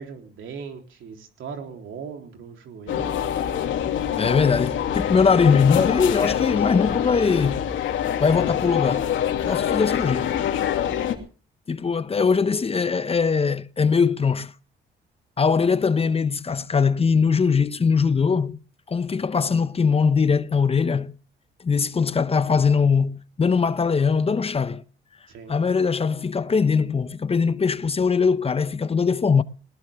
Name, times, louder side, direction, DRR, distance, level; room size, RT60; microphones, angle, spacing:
voice 1, 0.0-3.6 25.3-25.6, right 6 dB, 75° right, 3.6 m, -39 dB
sound 1, 2.9-11.1, left 9 dB, 80° left, 2.8 m, -25 dB
voice 2, 4.2-7.6 8.2-9.1 9.5-10.3 11.7-14.5 15.4-18.6 18.9-21.1 21.6-24.8 25.5-29.4, left 5 dB, 30° left, 0.8 m, -21 dB
19.5 x 19.0 x 3.6 m
cardioid pair, 90°, 20 cm